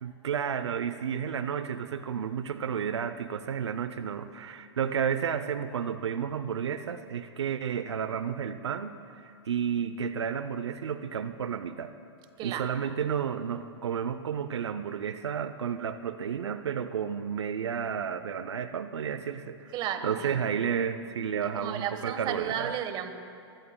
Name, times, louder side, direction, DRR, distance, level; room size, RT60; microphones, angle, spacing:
voice 1, 0.0-11.9 12.4-19.7 20.0-22.7, right 7 dB, 90° right, 11 dB, 0.6 m, -32 dB
voice 2, 19.7-20.4 21.5-23.1, right 9 dB, 35° right, 9 dB, 1.3 m, -33 dB
23.0 x 20.5 x 2.3 m, 2.5 s
hypercardioid pair, 130°, 14 cm